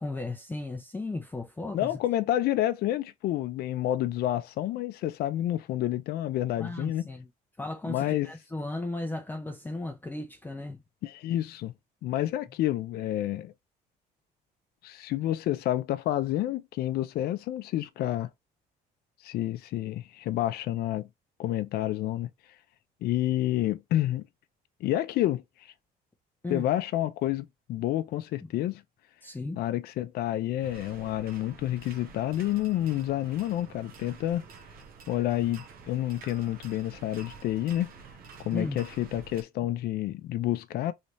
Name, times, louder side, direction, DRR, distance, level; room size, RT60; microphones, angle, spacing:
voice 1, 0.0-2.0 6.6-7.3 7.6-10.8 26.4-26.7 28.4-28.5 29.2-29.6 38.5-38.8, left 2 dB, 10° left, 0.5 m, -35 dB
voice 2, 1.7-7.0 7.9-8.3 11.0-11.7 12.0-13.5 14.8-18.3 19.2-21.1 21.4-22.3 23.0-24.2 24.8-25.7 26.5-28.8 29.6-34.4 35.1-37.9 38.4-40.9, left 13 dB, 70° left, 0.4 m, -29 dB
sound 1, 30.6-39.4, right 5 dB, 60° right, 0.9 m, -49 dB
3.3 x 2.7 x 3.0 m
cardioid pair, 110°, 17 cm